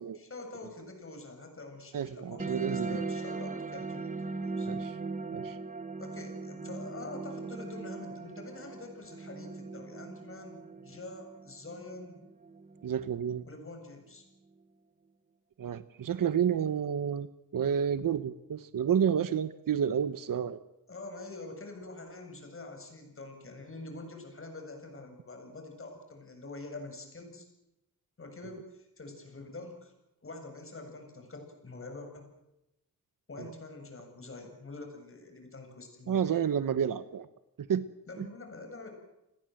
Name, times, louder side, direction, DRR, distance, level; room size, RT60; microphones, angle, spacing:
voice 1, 0.1-4.7 6.0-12.2 13.4-14.2 20.9-27.5 28.2-29.9 30.2-32.3 33.3-36.5 38.1-38.9, left 2 dB, 35° left, 5 dB, 7.6 m, -45 dB
voice 2, 1.9-3.0 4.6-5.0 5.3-5.6 12.8-13.4 15.6-17.3 17.5-20.6 33.4-33.5 36.1-37.3 37.7-37.8 38.2-38.3, right 8 dB, 65° right, 13 dB, 1.1 m, -30 dB
sound 1, 2.4-13.4, right 3 dB, 20° right, 1.6 m, -39 dB
29.5 x 21.5 x 7.9 m, 0.88 s
wide cardioid pair, 135°, 35 cm